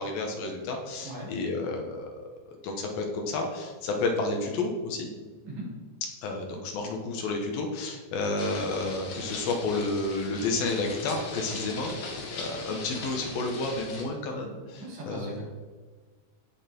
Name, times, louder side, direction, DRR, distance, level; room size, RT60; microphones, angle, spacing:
voice 1, 0.0-2.2 2.6-5.1 6.2-15.4, left 3 dB, 70° left, 2 dB, 3.1 m, -31 dB
sound 1, 8.4-14.0, left 3 dB, 50° left, 2.4 m, -39 dB
voice 2, 14.8-15.4, right 1 dB, 80° right, -5 dB, 5.6 m, -39 dB
17.0 x 5.9 x 4.5 m, 1.4 s
omnidirectional pair, 4.4 m